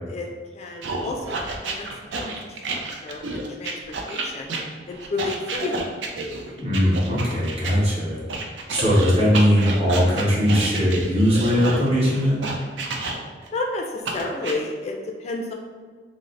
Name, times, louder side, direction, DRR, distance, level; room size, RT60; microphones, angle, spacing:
voice 1, 0.5-3.7 4.0-4.5 4.9-5.9 13.5-15.5, left 3 dB, 35° left, 2 dB, 0.3 m, -31 dB
sound 1, 0.8-7.7 8.3-13.5 14.0-14.5, right 3 dB, 80° right, 0.5 m, -30 dB
voice 2, 6.5-8.2 8.7-12.5, equal, 35° right, -7 dB, 1.0 m, -20 dB
3.1 x 2.0 x 3.8 m, 1.5 s
head